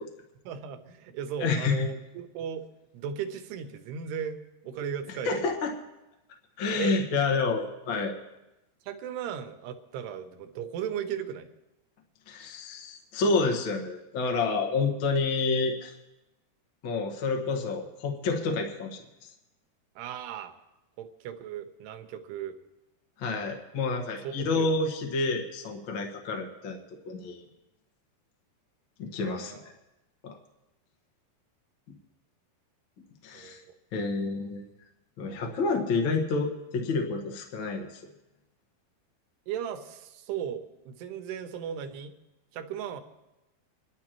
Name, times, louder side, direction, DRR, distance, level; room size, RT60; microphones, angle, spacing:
voice 1, 0.5-2.7 2.9-5.5 6.8-7.0 8.9-11.5 20.0-20.5 21.0-22.6 24.2-24.9 29.1-29.6 33.3-33.6 34.2-34.5 39.5-42.1 42.5-43.0, right 8 dB, 85° right, 7 dB, 3.0 m, -36 dB
voice 2, 1.4-1.9 5.2-5.7 6.6-8.1 12.3-15.9 16.8-19.0 23.2-26.8 27.0-27.4 29.0-29.6 30.2-30.3 33.2-33.6 33.9-34.6 35.2-37.9, left 4 dB, 70° left, 2 dB, 1.1 m, -29 dB
27.5 x 12.0 x 3.0 m, 0.96 s
omnidirectional pair, 4.7 m